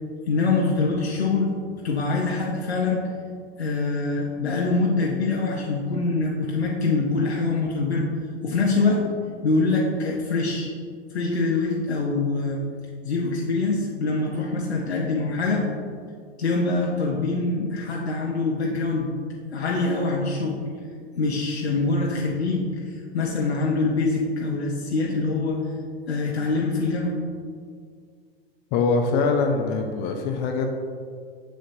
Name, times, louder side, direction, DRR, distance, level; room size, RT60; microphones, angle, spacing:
voice 1, 0.3-1.5 1.8-3.0 3.6-8.1 8.4-9.0 9.4-10.7 11.1-12.6 13.0-15.6 16.4-19.1 19.5-20.6 21.1-25.6 26.1-27.2, left 3 dB, 85° left, -3 dB, 0.9 m, -24 dB
voice 2, 28.7-30.7, left 4 dB, 30° left, 4 dB, 0.5 m, -23 dB
6.7 x 6.5 x 2.6 m, 2.1 s
hypercardioid pair, 105°, 31 cm